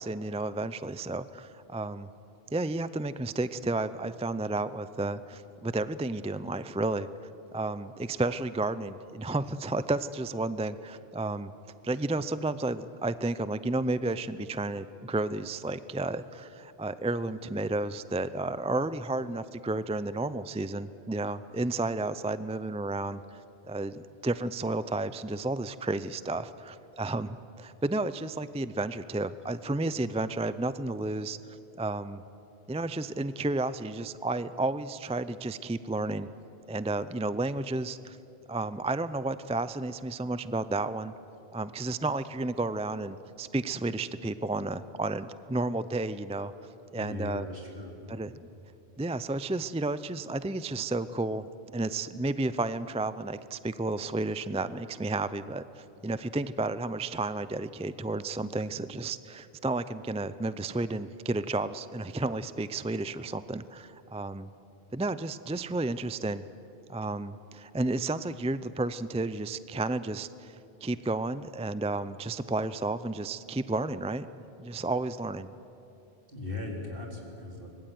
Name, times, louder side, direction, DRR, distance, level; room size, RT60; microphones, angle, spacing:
voice 1, 0.0-2.1 2.5-7.1 7.5-11.5 11.8-23.2 23.6-31.4 31.8-32.2 32.7-36.3 36.7-38.2 38.5-41.1 41.5-46.5 46.9-47.5 48.1-48.5 49.0-51.5 51.7-64.5 64.9-66.4 66.9-74.3 74.6-75.5, right 2 dB, 10° right, 14 dB, 0.3 m, -32 dB
voice 2, 46.9-48.0 76.3-77.7, left 2 dB, 55° right, -1 dB, 4.3 m, -38 dB
25.0 x 21.0 x 9.4 m, 2.8 s
omnidirectional pair, 1.1 m